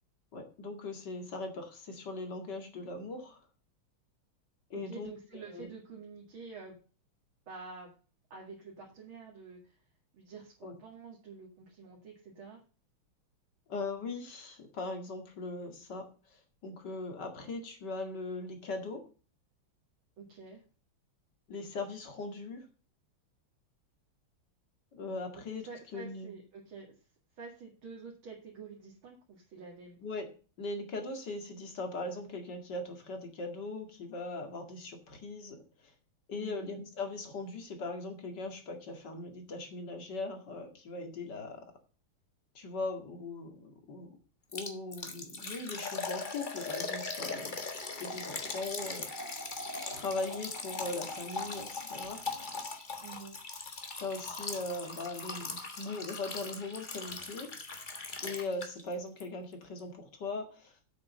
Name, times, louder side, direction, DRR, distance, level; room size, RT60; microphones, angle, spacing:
voice 1, 0.3-3.4 4.7-5.1 5.5-5.7 10.6-10.7 13.7-16.0 16.3-19.0 21.5-22.7 24.9-26.3 30.0-30.3 30.6-35.6 36.3-41.6 42.5-44.2 44.5-49.1 49.9-52.2 54.0-57.5 58.2-60.8, left 3 dB, 55° left, 5 dB, 2.6 m, -40 dB
voice 2, 4.7-6.8 7.5-7.9 8.3-9.8 10.1-12.6 20.2-20.6 25.3-26.9 27.4-30.0 36.3-36.7 53.0-53.4, right 4 dB, 70° right, -2 dB, 3.0 m, -48 dB
Liquid, 44.5-58.9 59.2-59.3 59.8-59.9, left 3 dB, 25° left, 1.3 m, -40 dB
8.1 x 6.8 x 6.8 m, 0.37 s
omnidirectional pair, 2.3 m